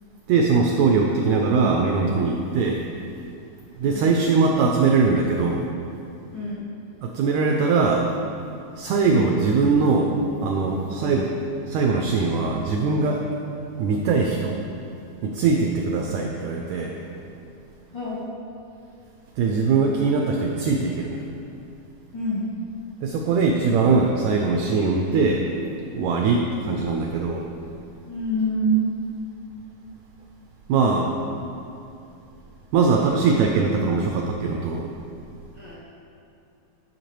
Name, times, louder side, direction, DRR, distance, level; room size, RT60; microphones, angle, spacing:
voice 1, 0.3-2.8 3.8-5.6 7.0-8.1 8.8-10.1 10.4-11.3 11.7-13.2 13.8-14.6 15.2-16.9 19.4-21.2 23.0-25.4 25.9-27.5 30.7-31.1 32.7-34.9, right 4 dB, 85° right, 1 dB, 1.6 m, -21 dB
voice 2, 6.3-6.6 17.9-18.2 22.1-22.5 28.1-28.9 35.6-35.8, right 2 dB, 70° left, -9 dB, 1.1 m, -25 dB
12.0 x 5.8 x 3.0 m, 2.7 s
omnidirectional pair, 3.8 m